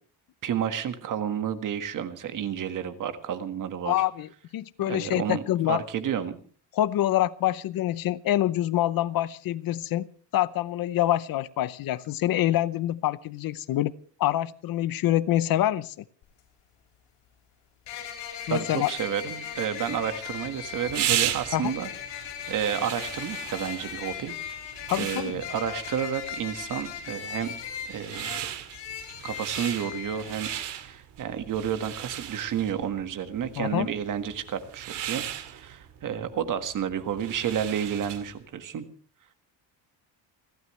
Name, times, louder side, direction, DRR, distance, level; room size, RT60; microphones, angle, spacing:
voice 1, 0.4-3.9 4.9-6.4 18.5-24.3 25.0-27.5 27.9-28.5 29.2-30.5 30.8-38.8, right 9 dB, 45° right, 9 dB, 1.7 m, -31 dB
voice 2, 3.9-5.8 6.7-10.1 10.3-13.9 14.2-16.0 18.5-18.9 21.5-21.7 24.9-25.3 33.6-33.9, left 13 dB, 55° left, 17 dB, 0.7 m, -26 dB
sound 1, 16.2-16.3 17.9-30.6, left 8 dB, 85° left, 6.8 m, -38 dB
sound 2, 19.9-38.4, right 12 dB, 75° right, 2.3 m, -36 dB
29.5 x 12.5 x 3.2 m, 0.42 s
cardioid pair, 170°, 42 cm